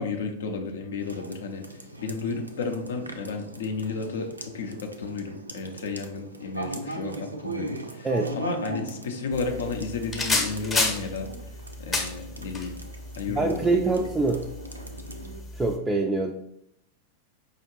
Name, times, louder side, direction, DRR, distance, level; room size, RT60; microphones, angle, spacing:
voice 1, 0.0-1.6 2.0-8.1 8.3-11.3 11.8-12.8 13.2-14.0, left 4 dB, 60° left, 5 dB, 0.6 m, -32 dB
sound 1, 1.0-15.4, right 1 dB, 80° right, 0.4 m, -40 dB
sound 2, 9.3-15.8, left 2 dB, 15° left, 0.8 m, -32 dB
voice 2, 13.3-14.5 15.5-16.3, right 3 dB, 10° right, 1 dB, 0.3 m, -24 dB
4.8 x 2.5 x 2.9 m, 0.76 s
figure-of-eight pair, 90°, 0 cm